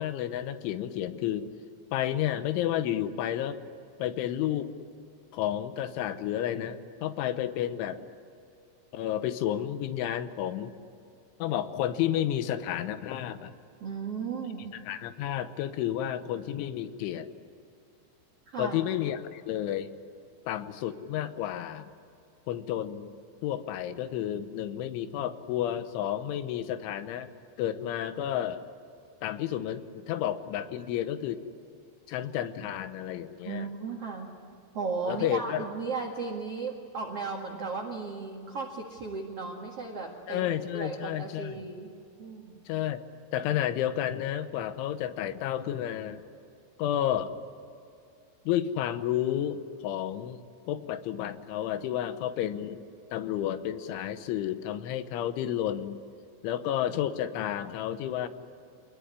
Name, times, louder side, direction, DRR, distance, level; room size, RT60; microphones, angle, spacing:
voice 1, 0.0-1.5 1.9-3.6 4.0-4.7 5.3-8.0 8.9-10.7 11.4-13.5 14.9-17.3 18.6-19.9 20.5-21.9 22.5-23.2 23.4-27.3 27.6-28.6 29.2-31.4 32.1-33.7 35.1-35.6 40.3-41.5 42.7-43.0 43.3-46.2 46.8-47.3 48.5-52.9 53.1-56.0 56.4-58.3, left 11 dB, 80° left, 11 dB, 3.4 m, -31 dB
voice 2, 13.8-14.7 18.5-18.8 33.4-34.3 34.7-41.9 42.2-42.6, right 4 dB, 50° right, 0 dB, 2.0 m, -35 dB
26.5 x 20.5 x 9.7 m, 2.5 s
omnidirectional pair, 5.4 m